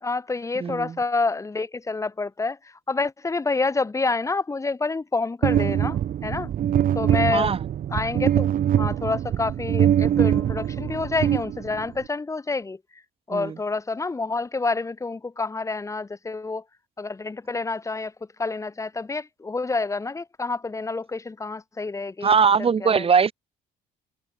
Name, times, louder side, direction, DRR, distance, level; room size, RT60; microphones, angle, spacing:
voice 1, 0.0-6.5 6.9-7.6 7.9-8.5 8.7-12.8 13.3-16.6 17.0-18.1 18.4-22.3 22.8-23.0, left 3 dB, 20° left, 1.6 m, -28 dB
voice 2, 0.6-0.9 7.3-7.6 13.3-13.6 22.2-23.3, right 6 dB, 35° right, 2.8 m, -20 dB
sound 1, 5.4-12.0, right 10 dB, 55° right, 3.2 m, -23 dB
cardioid pair, 110°, 17 cm